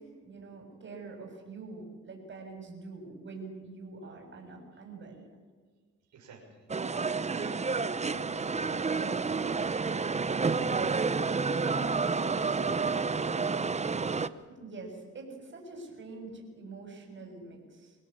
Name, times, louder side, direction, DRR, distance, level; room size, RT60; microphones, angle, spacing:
voice 1, 0.0-5.2 14.5-17.9, right 3 dB, 40° right, 2 dB, 7.3 m, -45 dB
voice 2, 6.1-10.2, right 4 dB, 70° right, -1 dB, 6.3 m, -51 dB
sound 1, 6.7-14.3, right 4 dB, 20° right, 0.9 m, -30 dB
24.5 x 17.5 x 8.8 m, 1.5 s
cardioid pair, 90°, 30 cm